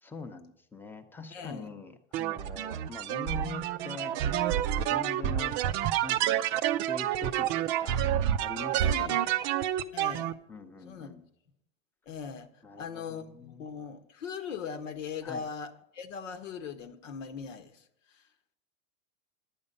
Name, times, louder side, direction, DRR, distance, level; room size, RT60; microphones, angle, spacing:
voice 1, 0.0-4.5 4.8-5.5 6.0-9.4 10.5-11.3 12.6-13.6 15.2-15.5, left 3 dB, 5° left, 0.7 m, -44 dB
voice 2, 1.3-1.7 8.8-9.2 9.9-10.4 10.8-11.1 12.1-12.5 12.8-17.8 18.1-18.2, left 6 dB, 80° left, 1.4 m, -40 dB
sound 1, 2.1-10.3, right 11 dB, 30° right, 0.4 m, -29 dB
11.0 x 8.6 x 5.3 m
supercardioid pair, 135°, 37 cm